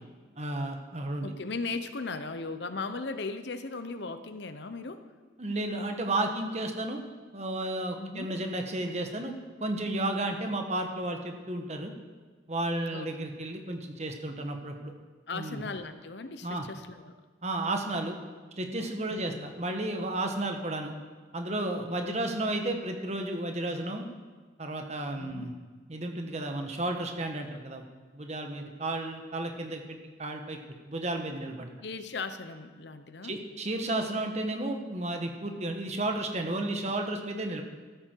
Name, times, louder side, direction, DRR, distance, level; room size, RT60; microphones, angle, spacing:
voice 1, 0.4-1.3 5.4-7.0 7.3-9.3 9.6-11.9 12.5-14.9 15.3-15.6 16.4-16.7 17.4-18.2 18.6-20.9 21.3-24.0 24.6-25.5 25.9-27.8 28.1-29.8 30.2-30.6 30.9-31.7 33.2-37.6, right 2 dB, 35° right, 4 dB, 1.4 m, -32 dB
voice 2, 1.2-5.1 8.0-8.3 12.9-13.4 15.3-17.2 19.1-19.5 22.0-22.2 25.2-25.5 31.8-33.4, left 3 dB, 65° left, 10 dB, 0.8 m, -38 dB
14.0 x 13.5 x 4.6 m, 1.4 s
head